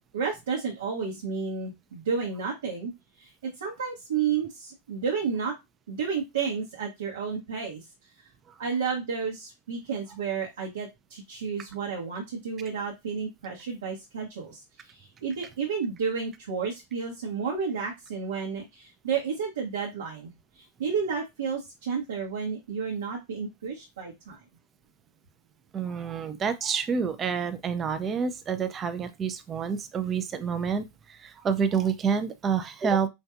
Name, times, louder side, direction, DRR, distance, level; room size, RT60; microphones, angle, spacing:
voice 1, 0.1-2.9 3.2-5.5 5.9-7.8 8.6-24.4, right 6 dB, 60° right, 0.9 m, -31 dB
voice 2, 25.7-30.8 31.1-33.1, right 6 dB, 25° right, 0.5 m, -28 dB
4.8 x 2.5 x 2.4 m
figure-of-eight pair, 90°, 0 cm